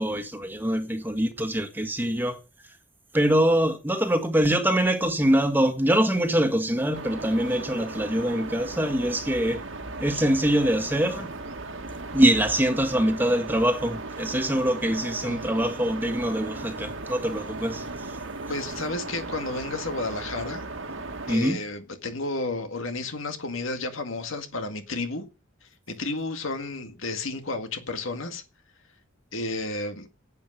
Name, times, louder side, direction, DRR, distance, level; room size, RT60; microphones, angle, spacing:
voice 1, 0.0-2.4 3.1-9.6 10.0-11.3 12.1-17.8 21.3-21.6, right 1 dB, 10° right, 1.6 m, -24 dB
sound 1, 6.9-21.4, right 3 dB, 75° right, 1.9 m, -37 dB
voice 2, 18.5-20.6 21.3-25.3 25.9-28.4 29.3-30.1, left 2 dB, 80° left, 2.0 m, -32 dB
10.5 x 8.5 x 6.5 m
head